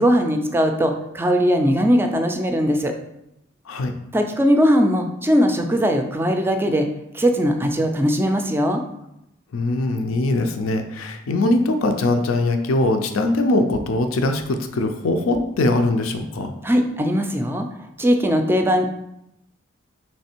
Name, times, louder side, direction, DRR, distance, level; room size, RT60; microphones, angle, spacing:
voice 1, 0.0-2.9 4.1-6.9 7.1-8.8 16.6-17.7 18.0-18.9, equal, 10° right, 5 dB, 0.4 m, -19 dB
voice 2, 9.5-16.5, left 2 dB, 85° left, 6 dB, 0.5 m, -21 dB
3.2 x 3.2 x 4.4 m, 0.84 s
head